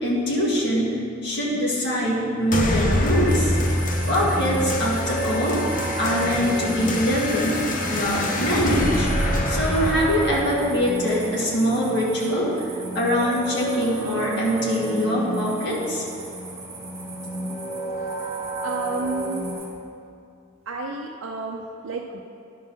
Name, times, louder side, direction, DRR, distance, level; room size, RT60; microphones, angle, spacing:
voice 1, 0.0-3.6 4.1-5.6 6.0-7.6 7.9-9.1 9.4-12.5 12.9-16.1, equal, 55° left, -5 dB, 1.9 m, -23 dB
sound 1, 2.5-11.5, left 1 dB, 40° left, 0.7 m, -25 dB
sound 2, 3.2-19.7, right 2 dB, 15° right, 1.2 m, -41 dB
sound 3, 3.8-19.5, right 1 dB, 75° left, 2.0 m, -33 dB
voice 2, 18.0-18.4 18.6-19.5 20.7-22.2, right 3 dB, 80° right, 0 dB, 0.5 m, -31 dB
11.0 x 3.7 x 6.1 m, 2.5 s
head